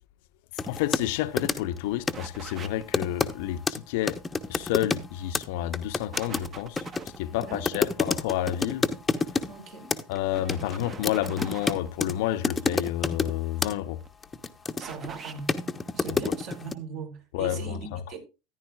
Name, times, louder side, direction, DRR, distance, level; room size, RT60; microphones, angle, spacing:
voice 1, 0.6-4.2 4.5-6.9 7.2-8.9 10.1-14.0 17.3-18.2, left 13 dB, 60° left, 0.7 m, -30 dB
sound 1, 0.6-1.1 1.4-1.8 2.1-2.3 2.9-3.3 3.7-3.8 4.1-5.1 5.3-5.5 5.7-9.5 9.9-10.2 10.5-12.1 12.4-13.3 13.6-13.7 14.2-15.1 15.5-16.7, left 4 dB, 15° left, 0.9 m, -28 dB
sound 2, 1.2-1.3 1.5-1.6 2.1-2.9 5.1-5.7 6.1-7.2 9.4-9.7 10.3-11.9 13.6-14.1 14.8-15.4, right 5 dB, 30° right, 1.3 m, -43 dB
voice 2, 7.3-7.8 9.5-9.9 14.8-15.5 15.9-18.2, right 5 dB, 50° right, 4.2 m, -39 dB
14.0 x 10.5 x 2.4 m
hypercardioid pair, 85°, 0 cm